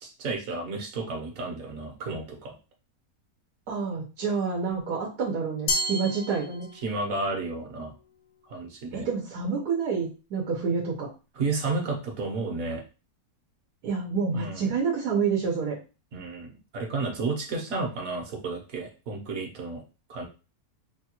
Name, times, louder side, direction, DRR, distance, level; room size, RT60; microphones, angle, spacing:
voice 1, 0.0-2.5 6.8-7.9 8.5-9.1 11.4-12.8 14.3-14.7 16.1-19.8 20.1-20.2, right 3 dB, 65° right, 2 dB, 1.3 m, -32 dB
voice 2, 3.7-6.7 8.9-11.1 13.8-15.8, right 5 dB, 90° right, -2 dB, 1.4 m, -28 dB
Glass, 5.7-7.1, left 1 dB, 70° left, 1.1 m, -31 dB
5.4 x 2.3 x 2.9 m, 0.32 s
omnidirectional pair, 1.6 m